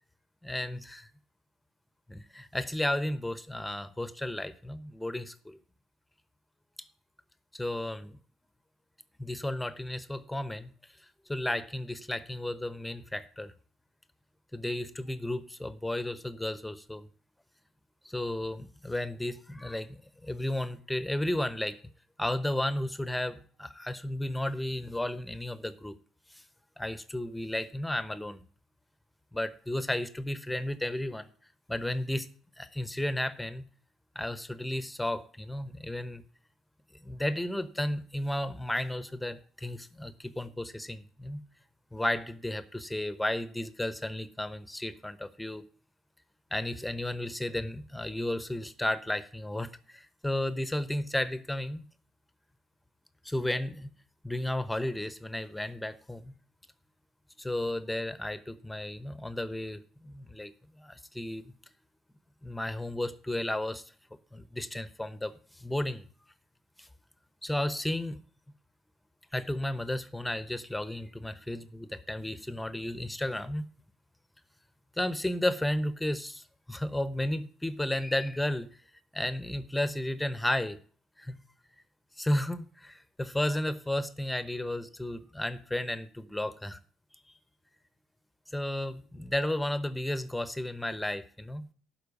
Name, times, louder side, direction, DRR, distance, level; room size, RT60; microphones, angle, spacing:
voice 1, 0.4-1.1 2.1-5.6 6.8-6.9 7.5-8.2 9.2-10.7 11.3-13.5 14.5-17.0 18.0-21.8 22.2-25.9 26.3-26.4 26.8-28.4 29.3-31.3 31.7-32.3 32.6-33.6 34.1-36.2 37.0-41.4 41.9-45.6 46.5-51.9 53.2-53.9 54.2-56.3 57.4-61.4 62.4-63.9 64.3-66.0 66.8-66.9 67.4-68.2 69.3-73.7 75.0-78.7 79.1-80.8 81.2-81.4 82.2-86.8 88.5-91.7, left 1 dB, 5° left, 1.0 m, -33 dB
11.5 x 4.7 x 8.2 m
figure-of-eight pair, 50°, 0 cm